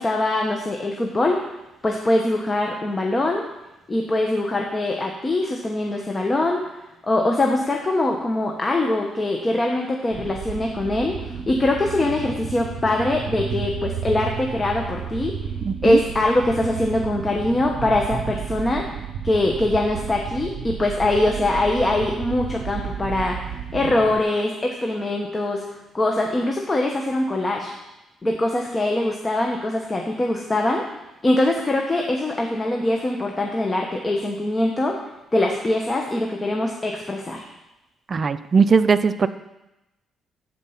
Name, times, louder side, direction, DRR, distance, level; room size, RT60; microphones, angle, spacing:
voice 1, 0.0-1.4 1.8-3.4 3.9-6.6 7.0-15.4 15.8-18.9 19.2-25.6 25.9-27.7 28.2-30.8 31.2-35.0 35.3-37.4, left 2 dB, 25° left, 1 dB, 1.0 m, -23 dB
sound 1, 10.1-24.2, right 7 dB, 70° right, 0.7 m, -32 dB
voice 2, 15.7-16.0 38.1-39.3, right 5 dB, 40° right, 13 dB, 0.4 m, -19 dB
13.5 x 4.5 x 5.7 m, 0.97 s
cardioid pair, 90°, 0 cm